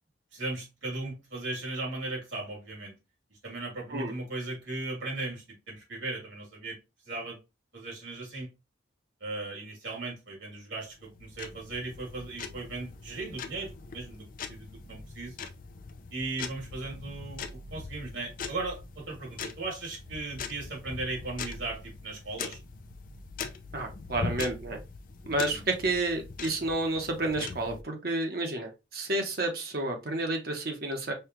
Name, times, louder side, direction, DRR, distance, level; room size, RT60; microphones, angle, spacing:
voice 1, 0.3-2.9 3.4-6.8 7.1-7.4 7.7-8.5 9.2-15.3 16.1-22.6 25.5-25.6, right 2 dB, 70° right, -2 dB, 2.5 m, -37 dB
sound 1, 10.9-27.8, left 4 dB, 45° left, 0.4 m, -41 dB
voice 2, 23.7-24.8 25.2-31.1, right 2 dB, 50° right, 2 dB, 1.0 m, -30 dB
5.5 x 2.4 x 2.9 m, 0.25 s
head